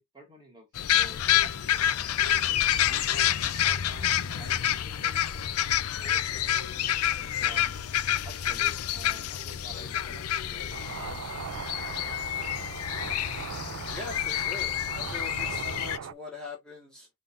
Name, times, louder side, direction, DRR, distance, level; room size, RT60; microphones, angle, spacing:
voice 1, 0.0-1.9 2.8-7.9 8.2-11.2, right 2 dB, 20° right, 1.9 m, -50 dB
sound 1, 0.8-16.0, left 11 dB, 85° left, 0.5 m, -28 dB
sound 2, 2.2-2.3 2.8-3.7 4.1-5.2 5.5-7.6, right 1 dB, 35° right, 1.8 m, -55 dB
sound 3, 10.7-16.1, right 7 dB, 70° right, 0.3 m, -39 dB
voice 2, 13.9-17.1, left 3 dB, 5° left, 1.6 m, -42 dB
5.4 x 3.6 x 2.5 m
head